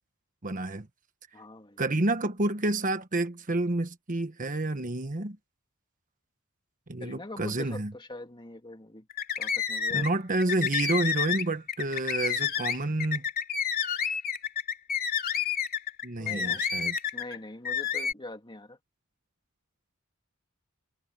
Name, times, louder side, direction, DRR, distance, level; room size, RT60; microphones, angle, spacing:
voice 1, 0.4-0.9 1.8-5.4 6.9-7.9 9.9-13.2 16.0-17.0, right 2 dB, 40° right, 1.2 m, -29 dB
voice 2, 1.3-1.8 7.0-9.1 9.4-10.1 16.2-16.6 17.1-18.8, left 2 dB, 25° left, 2.7 m, -43 dB
sound 1, 9.1-10.1 10.4-17.4 17.6-18.1, left 7 dB, 45° left, 2.9 m, -29 dB
head